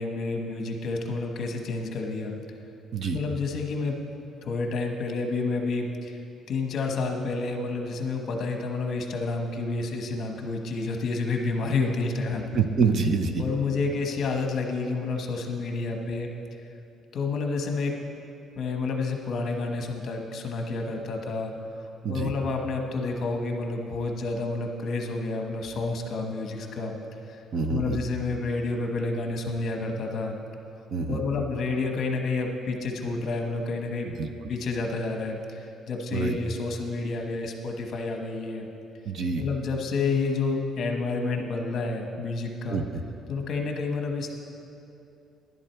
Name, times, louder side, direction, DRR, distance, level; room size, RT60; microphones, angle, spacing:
voice 1, 0.0-2.3 3.1-4.0 4.4-6.2 6.5-12.6 13.4-16.3 17.1-17.9 18.6-21.5 22.1-26.9 27.7-30.4 31.1-34.1 34.5-38.7 39.4-42.8 43.3-44.3, left 3 dB, 45° left, 3 dB, 1.1 m, -29 dB
voice 2, 12.5-13.4 22.0-22.3 27.5-28.0 30.9-31.2 34.1-34.3 36.1-36.4 39.0-39.4 42.7-43.0, right 5 dB, 45° right, 7 dB, 0.6 m, -26 dB
11.0 x 11.0 x 4.5 m, 2.8 s
cardioid pair, 170°, 0 cm